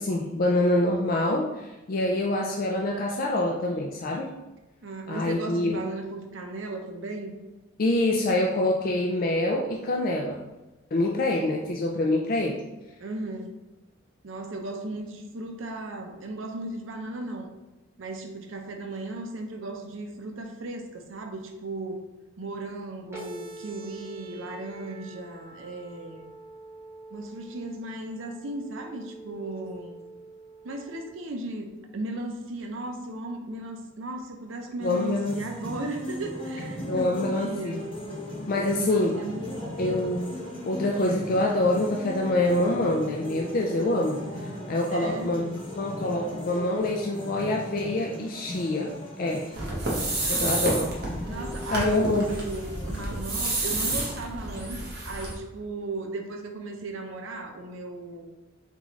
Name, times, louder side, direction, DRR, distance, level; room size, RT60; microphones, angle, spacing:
voice 1, 0.0-4.3 5.1-5.8 7.8-10.4 10.9-12.6 34.8-35.4 36.9-37.8 38.5-39.1 39.8-40.3 40.7-49.5 50.3-50.9 51.7-52.3, left 1 dB, 45° left, 0 dB, 0.4 m, -26 dB
voice 2, 4.8-7.4 13.0-13.6 14.2-17.5 18.0-22.0 22.4-26.3 27.1-30.0 30.6-37.9 38.6-39.8 44.9-45.4 50.2-50.5 51.3-58.3, right 2 dB, 80° right, 3 dB, 0.6 m, -36 dB
sound 1, 23.1-31.1, right 3 dB, 15° right, 0.9 m, -45 dB
sound 2, 34.8-53.2, equal, 25° left, 1.0 m, -38 dB
sound 3, 49.5-55.3, right 2 dB, 55° right, 1.1 m, -30 dB
3.7 x 3.6 x 3.1 m, 1.1 s
head